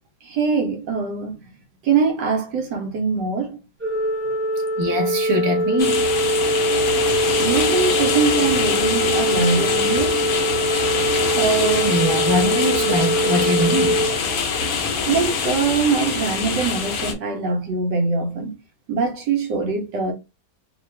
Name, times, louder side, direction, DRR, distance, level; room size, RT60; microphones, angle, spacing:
voice 1, 0.2-1.4 1.8-3.6 7.4-10.3 15.1-18.6 18.9-20.1, right 5 dB, 80° right, 1.4 m, -23 dB
Organ, 3.8-14.9, right 1 dB, 10° right, 0.9 m, -23 dB
voice 2, 4.8-6.1 11.3-14.0, right 1 dB, 30° right, 0.4 m, -22 dB
sound 1, 5.8-17.1, left 5 dB, 60° left, 1.0 m, -24 dB
3.2 x 2.3 x 3.1 m
omnidirectional pair, 1.8 m